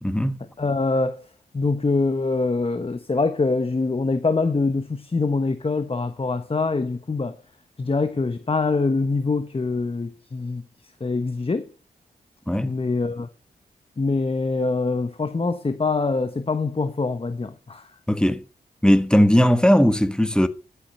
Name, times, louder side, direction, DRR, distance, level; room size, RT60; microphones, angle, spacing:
voice 1, 0.0-0.4 12.5-12.7 18.1-18.4 18.8-20.5, equal, 5° left, 1.3 m, -18 dB
voice 2, 0.6-1.3 1.5-7.4 7.8-10.6 11.0-11.7 12.6-13.3 14.0-17.9, left 3 dB, 35° left, 1.1 m, -24 dB
12.0 x 8.3 x 5.5 m
cardioid pair, 60°, 17 cm